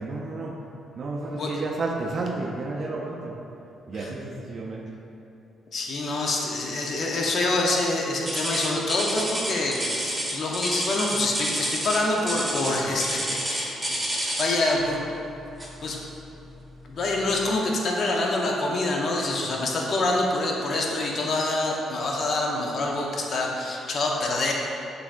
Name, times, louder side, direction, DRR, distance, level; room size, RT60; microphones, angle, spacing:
voice 1, 0.0-3.4 3.9-4.9, right 2 dB, 50° right, 0 dB, 0.4 m, -32 dB
voice 2, 5.7-13.7 14.1-15.0 15.8-16.0 16.9-24.5, left 2 dB, 55° left, -1 dB, 0.7 m, -26 dB
sound 1, 8.3-14.6 15.6-15.9 16.4-16.5 17.2-17.3, right 1 dB, 15° right, 0.9 m, -29 dB
6.9 x 2.7 x 2.4 m, 2.9 s
cardioid pair, 90°, 0 cm